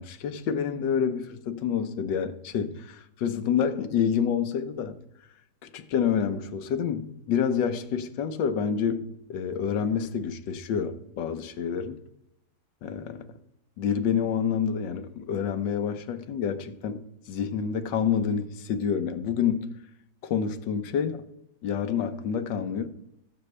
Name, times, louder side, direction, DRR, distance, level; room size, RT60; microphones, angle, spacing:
voice 1, 0.0-5.0 5.6-12.0 12.8-13.3 13.8-17.0 17.3-19.7 20.2-21.2 21.6-22.9, left 7 dB, 85° left, 1.5 m, -28 dB
17.5 x 7.9 x 3.3 m
omnidirectional pair, 1.9 m